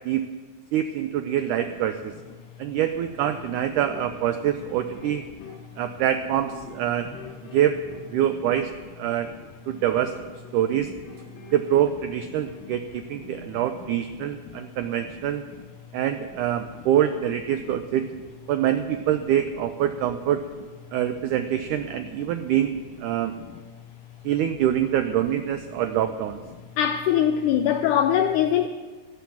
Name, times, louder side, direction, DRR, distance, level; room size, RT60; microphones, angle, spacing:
voice 1, 0.7-2.1 2.6-5.2 5.8-7.1 7.5-7.8 8.1-8.7 9.0-9.3 9.7-10.1 10.5-10.9 11.5-15.4 15.9-18.1 18.5-20.4 20.9-23.3 24.3-26.4, right 11 dB, 85° right, 1.8 m, -25 dB
sound 1, 3.2-12.7 12.9-13.9, left 3 dB, 35° left, 3.2 m, -46 dB
voice 2, 26.8-28.7, left 9 dB, 85° left, 1.8 m, -22 dB
13.0 x 11.5 x 7.2 m
omnidirectional pair, 4.2 m